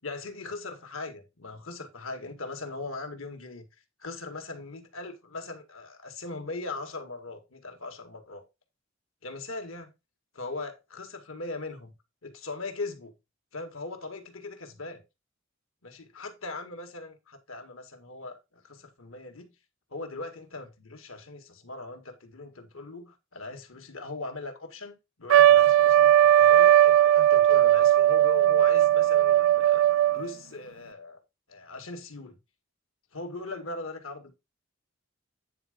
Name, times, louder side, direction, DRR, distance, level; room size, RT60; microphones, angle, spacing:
voice 1, 0.0-3.7 4.0-8.4 9.2-9.9 10.3-11.9 12.2-13.1 13.5-15.0 15.8-19.5 19.9-29.8 30.1-31.2 31.5-32.4 33.1-34.3, left 3 dB, 85° left, 1.8 m, -39 dB
Trumpet, 25.3-30.3, right 12 dB, 75° right, 0.3 m, -18 dB
9.3 x 3.8 x 5.1 m
head